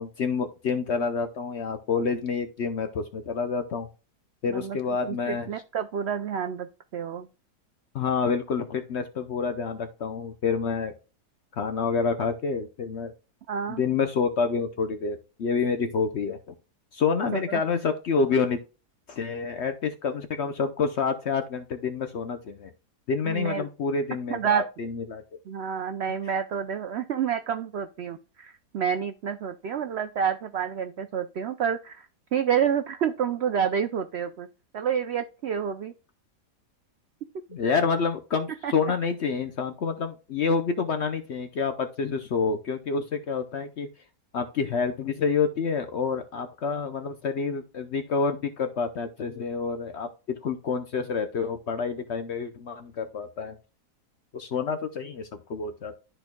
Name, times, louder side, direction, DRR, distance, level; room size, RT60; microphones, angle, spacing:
voice 1, 0.0-3.9 4.4-5.5 7.9-10.9 11.6-13.1 13.8-16.5 16.9-18.6 19.1-22.7 23.1-25.2 37.5-43.9 44.3-53.6 54.3-55.9, left 5 dB, 60° left, 8 dB, 0.7 m, -28 dB
voice 2, 4.5-7.3 13.5-13.8 17.3-17.6 23.2-23.7 24.3-24.6 25.5-34.5 34.7-35.9 38.6-38.7, right 8 dB, 75° right, 9 dB, 0.6 m, -29 dB
12.5 x 4.5 x 2.2 m, 0.33 s
omnidirectional pair, 1.7 m